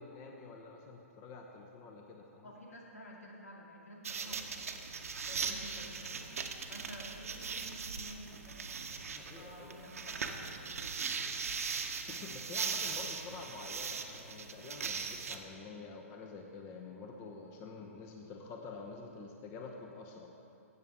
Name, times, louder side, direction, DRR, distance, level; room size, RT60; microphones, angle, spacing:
voice 1, 0.0-2.5 4.2-4.5 9.1-9.8 12.1-20.3, left 4 dB, 30° left, 2 dB, 0.8 m, -48 dB
voice 2, 2.4-4.8 5.3-6.4 6.7-8.7 9.3-11.3, equal, 85° left, -2 dB, 2.2 m, -51 dB
sound 1, 4.0-15.4, right 5 dB, 75° right, 0.8 m, -39 dB
13.5 x 8.1 x 3.5 m, 2.7 s
hypercardioid pair, 125°, 8 cm